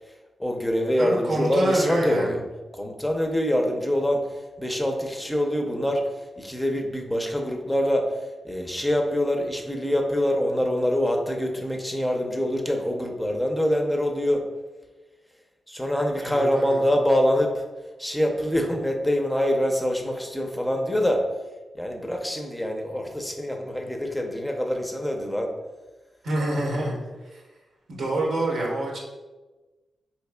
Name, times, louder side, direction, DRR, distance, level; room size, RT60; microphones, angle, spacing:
voice 1, 0.4-2.4 2.7-6.0 6.4-8.1 8.4-14.5 15.7-17.6 18.0-21.2 21.7-25.5, equal, 5° left, 2 dB, 0.5 m, -25 dB
voice 2, 1.0-2.4 16.2-16.8 26.2-27.0 27.3-27.4 27.9-29.0, right 1 dB, 85° right, -2 dB, 0.8 m, -27 dB
3.9 x 3.0 x 2.2 m, 1.2 s
cardioid pair, 65°, 0 cm